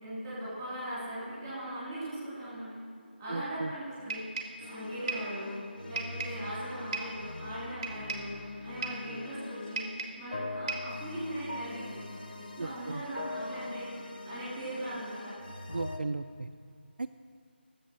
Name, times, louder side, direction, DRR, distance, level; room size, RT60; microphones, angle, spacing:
voice 1, 0.0-2.7 3.2-4.2 4.7-5.6 5.9-9.9 10.2-12.0 12.4-13.9 14.2-15.3, right 1 dB, ahead, -12 dB, 3.3 m, -39 dB
voice 2, 3.3-3.7 12.6-13.0 15.7-16.5 17.0-17.1, right 3 dB, 55° right, 7 dB, 0.4 m, -36 dB
sound 1, 4.1-4.6 5.1-5.3 6.0-6.4 6.9-7.2 7.8-8.3 8.8-9.1 9.8-10.2 10.7-11.0, right 4 dB, 20° right, 1.1 m, -36 dB
sound 2, 4.6-16.0, left 2 dB, 50° left, 1.1 m, -42 dB
11.0 x 7.5 x 6.2 m, 2.4 s
figure-of-eight pair, 180°, 6 cm